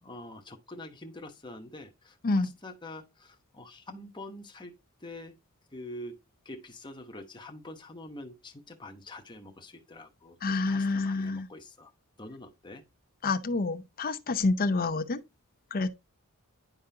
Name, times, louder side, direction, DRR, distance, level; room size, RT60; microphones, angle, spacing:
voice 1, 0.0-5.4 5.7-6.2 6.4-11.9 12.2-12.9, left 1 dB, 20° left, 1.0 m, -45 dB
voice 2, 10.4-11.5 13.2-15.2 15.7-15.9, left 3 dB, 40° left, 0.6 m, -28 dB
10.5 x 3.7 x 2.7 m
head